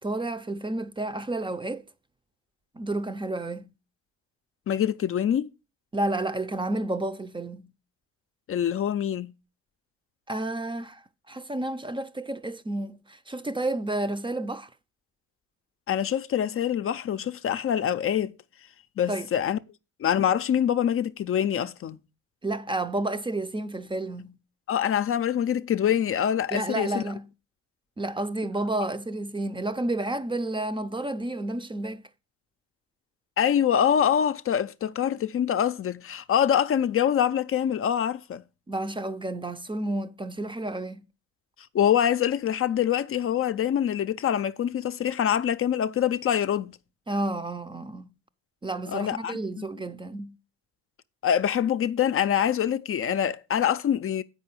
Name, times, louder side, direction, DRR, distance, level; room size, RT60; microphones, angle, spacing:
voice 1, 0.0-1.9 2.7-3.7 5.9-7.7 10.3-14.7 19.1-19.3 22.4-24.4 26.5-27.3 28.0-32.0 38.7-41.0 47.1-48.1 48.6-50.4, right 2 dB, 15° right, 0.6 m, -31 dB
voice 2, 4.7-5.5 8.5-9.3 15.9-18.4 19.0-19.6 20.0-22.0 24.7-27.0 33.4-38.4 41.7-46.8 48.9-49.6 51.2-54.2, left 9 dB, 45° left, 0.5 m, -25 dB
7.9 x 5.6 x 6.0 m
cardioid pair, 90°, 30 cm